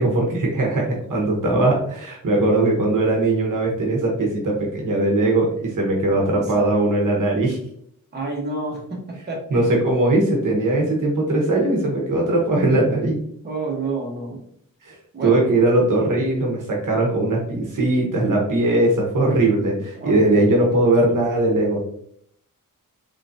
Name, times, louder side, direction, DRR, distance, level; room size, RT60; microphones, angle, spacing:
voice 1, 0.0-7.6 9.5-13.2 14.9-15.0 15.2-21.8, right 2 dB, 60° right, -1 dB, 1.0 m, -20 dB
voice 2, 6.1-6.7 8.1-9.8 13.4-14.4 15.1-15.5 19.9-20.5, right 3 dB, 30° right, -3 dB, 1.0 m, -30 dB
3.8 x 3.3 x 2.6 m, 0.68 s
wide cardioid pair, 155°, 35 cm